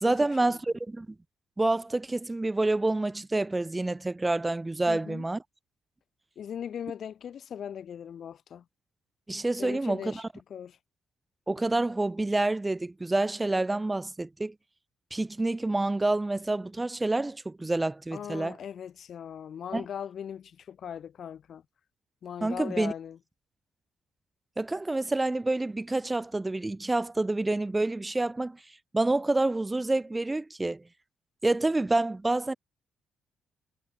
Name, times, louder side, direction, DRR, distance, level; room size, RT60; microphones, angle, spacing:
voice 1, 0.0-1.1 1.6-5.4 9.3-10.2 11.5-14.5 15.1-18.6 19.7-19.8 22.4-22.9 24.6-28.6 28.9-30.8 31.4-32.5, right 2 dB, 15° right, 0.8 m, -28 dB
voice 2, 4.9-5.2 6.4-8.6 9.6-10.2 10.5-10.8 18.1-21.6 22.2-23.2, left 8 dB, 60° left, 1.9 m, -39 dB
cardioid pair, 90°, 0 cm